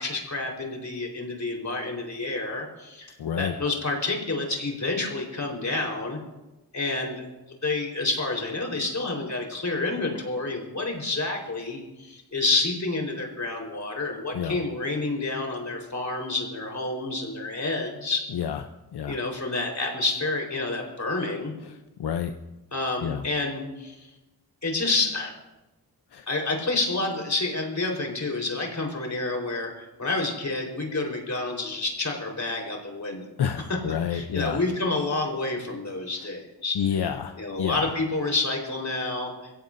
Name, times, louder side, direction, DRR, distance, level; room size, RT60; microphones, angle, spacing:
voice 1, 0.0-6.2 6.7-7.2 7.6-18.2 19.1-21.5 22.7-24.1 24.6-25.3 26.3-33.2 34.1-36.8 37.4-39.5, left 3 dB, 45° left, 1 dB, 4.2 m, -29 dB
voice 2, 3.2-3.5 14.3-14.6 18.3-18.6 18.9-19.2 21.6-22.3 23.0-23.3 26.1-26.3 33.4-34.6 36.2-36.3 36.7-37.9, left 8 dB, 80° left, 7 dB, 0.7 m, -29 dB
22.5 x 16.5 x 2.6 m, 1.0 s
cardioid pair, 70°, 39 cm